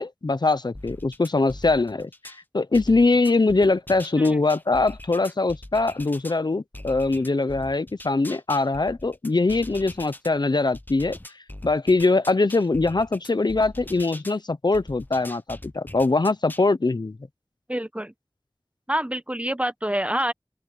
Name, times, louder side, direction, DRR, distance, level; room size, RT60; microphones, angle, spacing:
voice 1, 0.0-11.2 11.6-17.2, left 3 dB, 70° left, 0.7 m, -22 dB
sound 1, 0.7-2.4 2.7-6.4 6.7-10.3 10.7-14.4 14.7-16.7, left 1 dB, 25° left, 1.1 m, -41 dB
voice 2, 17.7-18.1 18.9-20.3, right 1 dB, 15° right, 1.1 m, -27 dB
wide cardioid pair, 45°, 8 cm